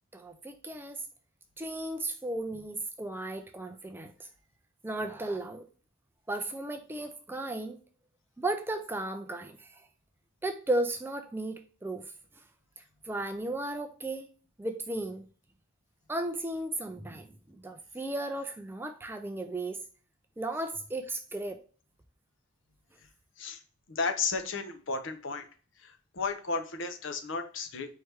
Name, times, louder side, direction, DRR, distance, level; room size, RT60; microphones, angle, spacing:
voice 1, 0.1-1.0 1.6-4.3 4.8-5.6 6.3-7.8 8.4-9.9 10.4-12.4 12.8-14.3 14.6-15.3 16.1-19.8 20.4-21.6, right 2 dB, 10° right, 7 dB, 0.3 m, -35 dB
voice 2, 23.9-25.4 26.2-27.9, left 4 dB, 60° left, 8 dB, 0.7 m, -33 dB
4.6 x 3.2 x 3.3 m, 0.39 s
head